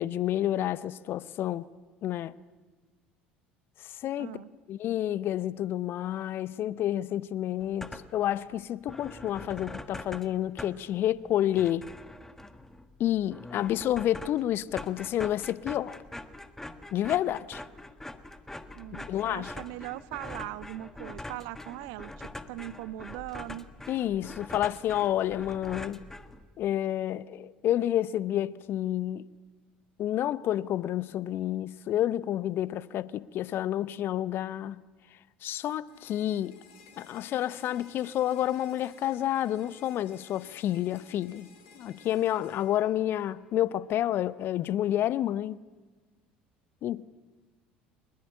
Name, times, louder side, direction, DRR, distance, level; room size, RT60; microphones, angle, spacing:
voice 1, 0.0-1.6 2.0-2.3 3.8-4.3 4.7-11.9 13.0-16.0 16.9-17.6 19.1-19.5 23.9-26.0 26.6-29.2 30.0-34.8 35.4-36.6 37.0-41.5 41.8-45.6 46.8-47.1, left 12 dB, 45° left, 0.8 m, -29 dB
voice 2, 4.2-4.5 13.8-14.0 18.7-23.7, right 16 dB, 60° right, 0.8 m, -40 dB
sound 1, 7.6-8.3 8.6-8.7 8.9-26.7, left 1 dB, 10° left, 1.4 m, -44 dB
sound 2, 35.9-43.9, left 5 dB, 65° left, 4.0 m, -56 dB
22.5 x 21.0 x 10.0 m
figure-of-eight pair, 65°, 5 cm